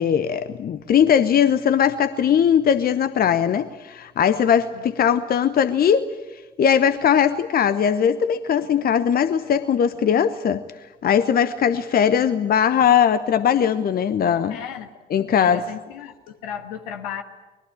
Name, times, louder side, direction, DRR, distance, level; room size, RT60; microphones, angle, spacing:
voice 1, 0.0-6.1 6.6-10.6 11.0-14.6 15.1-15.6, left 8 dB, 50° left, 12 dB, 1.0 m, -19 dB
voice 2, 14.5-14.9 15.4-17.2, left 8 dB, 75° left, 6 dB, 1.8 m, -34 dB
24.5 x 21.5 x 8.7 m, 1.1 s
figure-of-eight pair, 45°, 21 cm